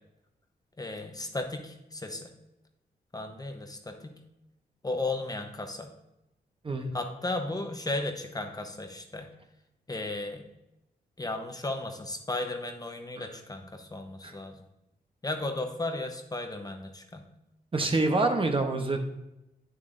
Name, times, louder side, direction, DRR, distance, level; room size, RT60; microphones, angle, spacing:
voice 1, 0.8-2.3 3.1-4.2 4.8-5.9 6.9-9.3 9.9-10.4 11.2-14.5 15.2-17.3, left 2 dB, 25° left, 5 dB, 0.9 m, -35 dB
voice 2, 17.7-19.0, right 2 dB, 35° right, 4 dB, 0.9 m, -26 dB
8.8 x 7.2 x 2.6 m, 0.90 s
cardioid pair, 80°, 17 cm